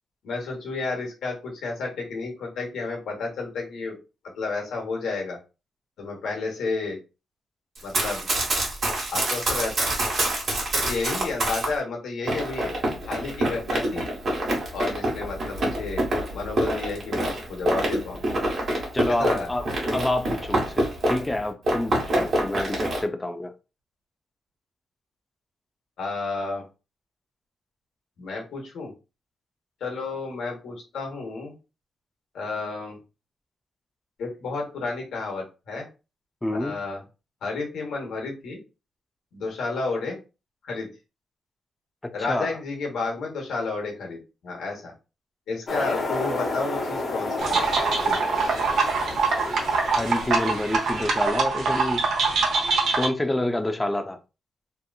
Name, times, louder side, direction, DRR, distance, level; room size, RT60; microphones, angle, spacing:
voice 1, 0.2-4.0 4.4-5.4 6.0-7.0 7.8-8.3 9.1-9.9 10.7-14.1 14.7-16.1 16.3-18.2 18.5-18.6 19.1-19.5 26.0-26.6 28.2-28.9 29.8-31.5 32.3-33.0 34.2-35.9 36.6-37.0 37.4-38.6 39.3-40.2 40.6-40.9 42.1-44.9 45.5-48.4, left 3 dB, 85° left, 1.1 m, -31 dB
Run, 7.8-11.7 12.3-21.4 21.6-23.0, right 1 dB, 50° right, 1.1 m, -26 dB
voice 2, 18.9-23.5 36.4-36.8 42.0-42.6 49.4-52.0 53.0-54.2, left 1 dB, 15° left, 0.4 m, -28 dB
sound 1, 45.7-51.2, left 2 dB, 40° left, 0.7 m, -31 dB
sound 2, 47.4-53.1, right 4 dB, 70° right, 0.7 m, -24 dB
2.9 x 2.4 x 2.3 m
cardioid pair, 120°, 0 cm